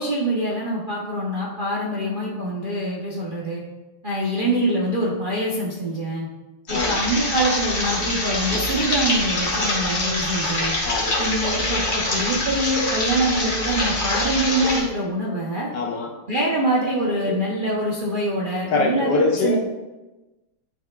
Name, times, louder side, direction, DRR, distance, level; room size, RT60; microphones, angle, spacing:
voice 1, 0.0-3.6 4.0-6.3 6.7-10.7 11.2-15.7 16.3-19.5, right 1 dB, 70° right, -5 dB, 0.4 m, -24 dB
sound 1, 6.7-14.8, left 1 dB, 35° left, 1.4 m, -25 dB
voice 2, 10.8-11.2 15.7-16.1 17.3-17.4 18.7-19.6, left 3 dB, 65° left, 2 dB, 1.2 m, -23 dB
10.5 x 4.4 x 2.4 m, 1.1 s
omnidirectional pair, 2.3 m